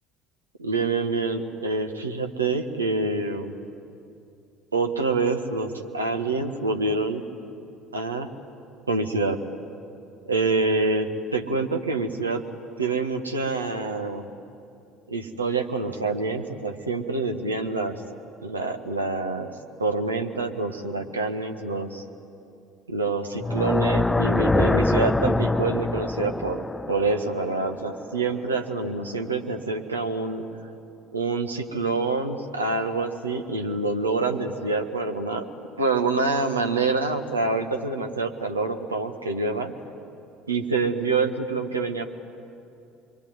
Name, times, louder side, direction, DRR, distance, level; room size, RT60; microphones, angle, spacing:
voice 1, 0.6-3.5 4.7-7.2 7.9-8.3 8.9-9.4 10.3-12.4 12.8-14.3 15.1-17.9 18.4-22.0 22.9-30.5 31.1-35.5 35.8-39.7 40.5-42.1, right 3 dB, 90° right, 5 dB, 1.5 m, -26 dB
sound 1, 23.4-28.5, left 2 dB, 15° left, 0.6 m, -24 dB
26.5 x 23.0 x 9.5 m, 2.6 s
figure-of-eight pair, 60°, 0 cm